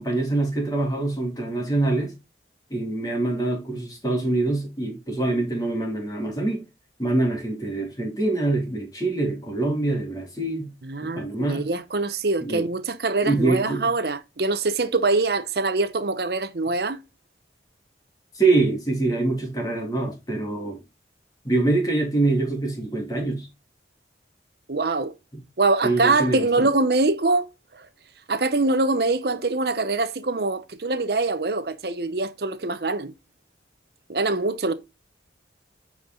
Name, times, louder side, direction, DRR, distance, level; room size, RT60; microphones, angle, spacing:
voice 1, 0.0-2.1 2.7-6.6 7.0-10.7 11.0-11.7 12.4-12.7 13.2-13.9 18.3-20.8 21.4-23.5 25.3-25.4 25.8-26.7, right 2 dB, 20° left, 2.6 m, -24 dB
voice 2, 10.9-17.0 24.7-25.1 25.6-27.5 27.7-27.8 28.3-33.1 34.1-34.7, right 3 dB, 60° right, 0.9 m, -24 dB
9.2 x 4.8 x 3.8 m
head